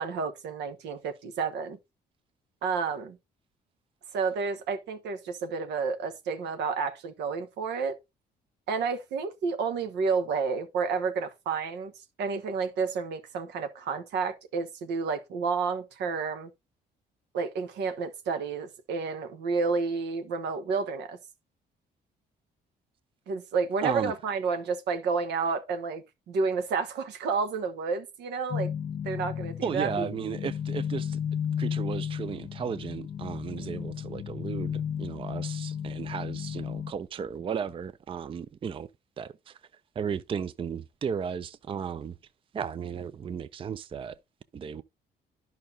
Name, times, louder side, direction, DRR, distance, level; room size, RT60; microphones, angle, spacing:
voice 1, 0.0-1.8 2.6-3.2 4.1-8.0 8.7-11.9 12.2-16.5 17.3-21.2 23.3-28.7 29.0-30.1 33.6-33.8, right 5 dB, 85° right, 1.1 m, -30 dB
voice 2, 23.8-24.1 29.6-31.2 31.6-38.9 39.2-39.6 40.0-42.2 42.5-44.2 44.5-44.8, right 7 dB, 30° right, 0.4 m, -34 dB
sound 1, 28.5-36.9, left 8 dB, 50° left, 0.7 m, -33 dB
11.0 x 5.6 x 2.7 m
cardioid pair, 105°, 17 cm